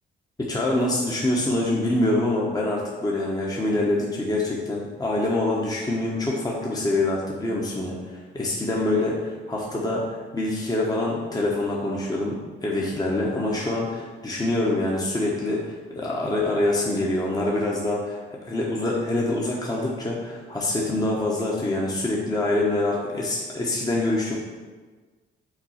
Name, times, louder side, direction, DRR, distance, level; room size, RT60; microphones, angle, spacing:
voice 1, 0.4-8.0 8.3-24.4, left 2 dB, 20° left, -3 dB, 1.0 m, -25 dB
5.8 x 3.8 x 5.7 m, 1.4 s
cardioid pair, 90°, 20 cm